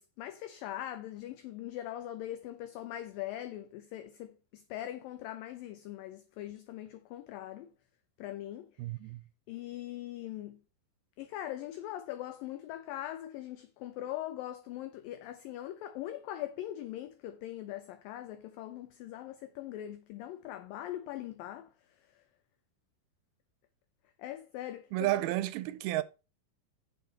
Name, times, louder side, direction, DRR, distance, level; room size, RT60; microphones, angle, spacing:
voice 1, 0.0-7.7 8.2-8.7 9.5-10.6 11.2-21.7 24.2-25.1, left 13 dB, 75° left, 2.2 m, -41 dB
voice 2, 8.8-9.2 24.9-26.0, right 16 dB, 85° right, 2.5 m, -31 dB
9.9 x 6.9 x 4.1 m
omnidirectional pair, 4.5 m